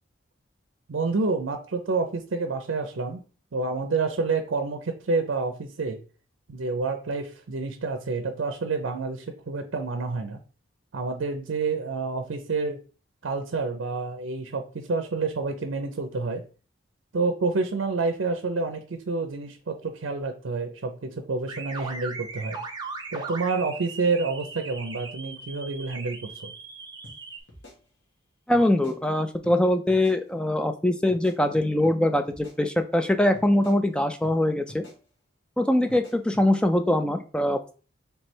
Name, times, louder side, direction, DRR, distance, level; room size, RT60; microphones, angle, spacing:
voice 1, 0.9-3.2 3.5-6.0 6.5-10.4 10.9-12.8 13.2-16.4 17.1-22.6 23.1-26.5, right 3 dB, 80° right, 6 dB, 0.5 m, -28 dB
sound 1, 21.5-27.4, right 4 dB, 20° right, 0.7 m, -38 dB
sound 2, 27.0-27.2 27.5-28.2 28.5-29.0 29.4-29.6 29.9-30.2 31.1-32.0 32.3-33.0 33.3-33.8 34.2-34.4 34.7-35.0 35.9-36.5, left 1 dB, 75° left, 1.5 m, -47 dB
voice 2, 28.5-34.8 35.6-37.7, left 1 dB, 5° left, 7 dB, 0.3 m, -23 dB
3.3 x 3.2 x 4.3 m, 0.38 s
head